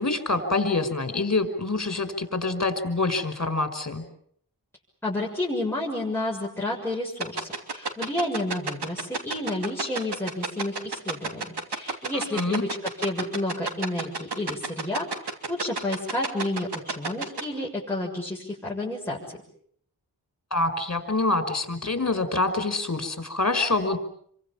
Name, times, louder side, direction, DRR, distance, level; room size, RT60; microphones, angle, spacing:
voice 1, 0.0-4.0 12.1-12.7 20.5-24.0, left 2 dB, 40° left, 8 dB, 5.3 m, -26 dB
voice 2, 5.0-15.1 15.5-19.2, left 1 dB, 5° left, -5 dB, 6.9 m, -30 dB
sound 1, 7.2-17.4, right 4 dB, 85° right, 3.0 m, -28 dB
29.0 x 24.0 x 7.3 m, 0.64 s
wide cardioid pair, 65°, 39 cm